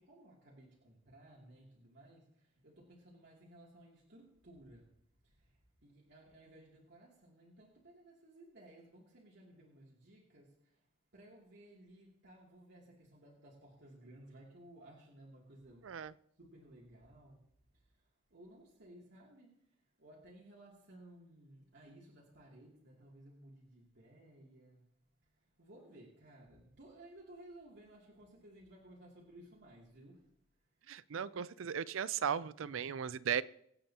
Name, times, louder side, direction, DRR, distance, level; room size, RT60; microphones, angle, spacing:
voice 1, 0.0-4.9 5.2-10.8 11.1-15.9 16.4-17.4 17.9-19.5 20.0-24.8 25.6-30.3, right 1 dB, 60° right, -4 dB, 2.7 m, -58 dB
voice 2, 30.9-33.4, right 8 dB, 90° right, 18 dB, 0.5 m, -36 dB
24.5 x 8.9 x 2.9 m, 0.72 s
head